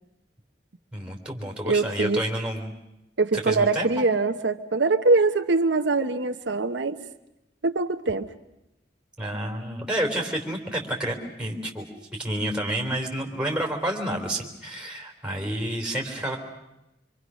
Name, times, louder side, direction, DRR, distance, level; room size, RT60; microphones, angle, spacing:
voice 1, 0.9-2.7 3.5-4.0 9.2-11.9 12.1-16.4, right 1 dB, 5° right, 0 dB, 3.6 m, -29 dB
voice 2, 1.6-2.2 3.2-7.0 7.6-8.3, right 3 dB, 85° right, 7 dB, 1.0 m, -23 dB
26.0 x 25.0 x 6.3 m, 0.91 s
head